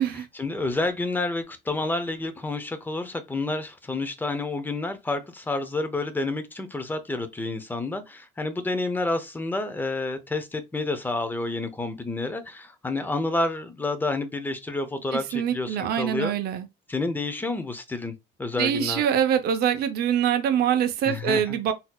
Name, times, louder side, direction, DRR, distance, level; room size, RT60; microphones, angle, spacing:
voice 1, 0.3-16.3 16.9-19.0 21.1-21.6, left 2 dB, 10° left, 0.6 m, -29 dB
voice 2, 15.1-16.7 18.6-21.7, right 9 dB, 60° right, 0.6 m, -24 dB
4.1 x 2.7 x 2.3 m
cardioid pair, 140°, 19 cm